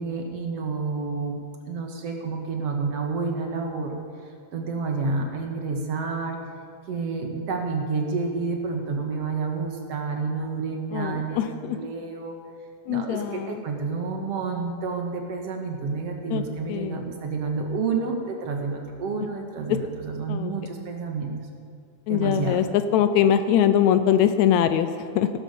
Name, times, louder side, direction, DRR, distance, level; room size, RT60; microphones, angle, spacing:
voice 1, 0.0-1.4 1.7-3.9 4.5-6.4 6.9-12.4 12.9-21.3 22.1-22.6, right 4 dB, 60° right, 2 dB, 2.3 m, -29 dB
voice 2, 10.9-11.8 12.9-13.6 16.3-16.4 16.7-17.0 20.3-20.5 22.1-25.3, left 9 dB, 75° left, 10 dB, 1.8 m, -22 dB
17.0 x 12.5 x 5.3 m, 2.3 s
omnidirectional pair, 3.5 m